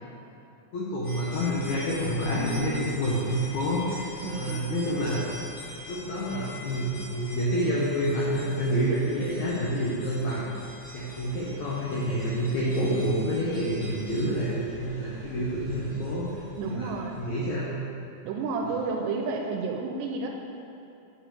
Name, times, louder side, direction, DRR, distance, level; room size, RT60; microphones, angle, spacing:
voice 1, 0.7-5.3 5.8-10.5 10.9-16.9 17.2-17.7 18.6-18.9, equal, 85° left, -6 dB, 1.6 m, -28 dB
sound 1, 1.0-17.5, left 1 dB, 65° left, 4.2 m, -43 dB
voice 2, 4.2-4.7 16.6-17.2 18.2-20.3, right 4 dB, 85° right, 2 dB, 2.7 m, -31 dB
9.8 x 5.0 x 6.6 m, 2.8 s
omnidirectional pair, 5.3 m